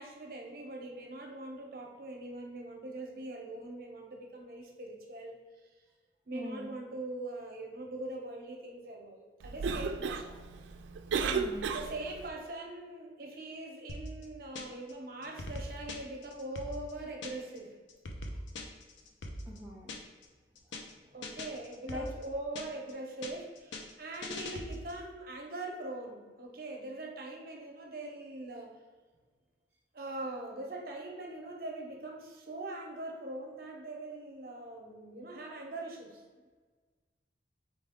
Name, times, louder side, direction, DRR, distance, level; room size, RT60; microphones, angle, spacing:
voice 1, 0.0-5.7 6.3-10.4 11.7-17.7 21.1-28.7 29.9-36.2, right 2 dB, 50° right, 1 dB, 0.8 m, -42 dB
voice 2, 6.3-6.7 11.3-11.7 19.4-19.9 21.0-21.1 21.9-22.1, equal, 10° right, -4 dB, 0.4 m, -41 dB
Cough, 9.4-12.3, right 5 dB, 85° right, 0.3 m, -34 dB
sound 1, 13.9-14.9 15.2-17.6 17.9-20.2 20.5-20.9 21.2-22.9 23.2-25.0, left 1 dB, 85° left, 0.6 m, -42 dB
4.2 x 3.5 x 3.5 m, 1.4 s
head